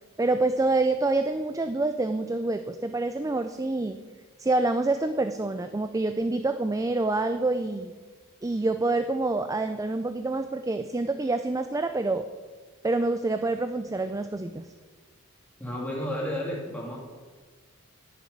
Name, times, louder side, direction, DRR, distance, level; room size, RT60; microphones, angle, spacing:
voice 1, 0.2-4.0 4.4-7.9 8.4-12.3 12.8-14.7, right 2 dB, 15° right, 9 dB, 0.4 m, -27 dB
voice 2, 15.6-17.0, equal, 5° left, -4 dB, 2.4 m, -32 dB
10.0 x 6.8 x 9.2 m, 1.5 s
head